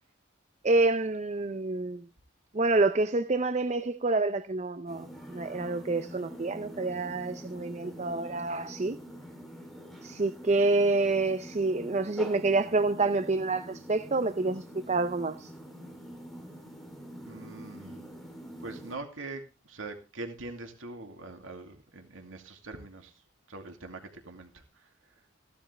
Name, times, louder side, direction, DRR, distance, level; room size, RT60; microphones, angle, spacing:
voice 1, 0.6-2.0 2.5-9.0 10.0-15.5, right 3 dB, 35° right, 0.6 m, -28 dB
sound 1, 4.9-18.9, equal, ahead, 3.1 m, -45 dB
voice 2, 17.3-18.1 18.6-23.1 23.5-24.9, right 2 dB, 85° right, 2.4 m, -43 dB
15.5 x 12.0 x 3.3 m
head